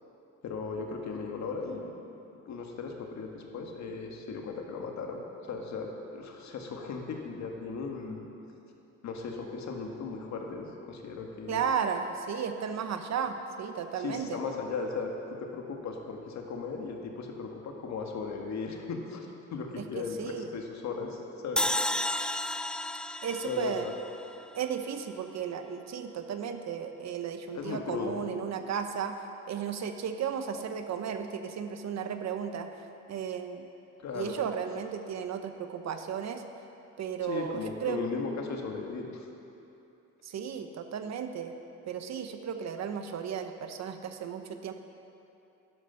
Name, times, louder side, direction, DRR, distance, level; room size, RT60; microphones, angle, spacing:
voice 1, 0.4-2.0 2.5-8.2 9.0-11.7 13.9-15.1 15.4-21.7 23.4-23.7 27.5-28.2 34.0-34.4 37.2-39.3, left 4 dB, 65° left, 2 dB, 1.8 m, -37 dB
voice 2, 11.5-14.4 19.8-20.5 23.2-23.9 24.6-29.2 29.5-32.7 33.1-33.6 34.1-36.4 37.0-38.0 40.2-41.5 41.9-44.7, right 7 dB, 60° right, 7 dB, 1.0 m, -34 dB
sound 1, 21.6-24.8, left 1 dB, 5° left, 0.3 m, -32 dB
11.5 x 11.5 x 5.8 m, 2.8 s
cardioid pair, 90°, 30 cm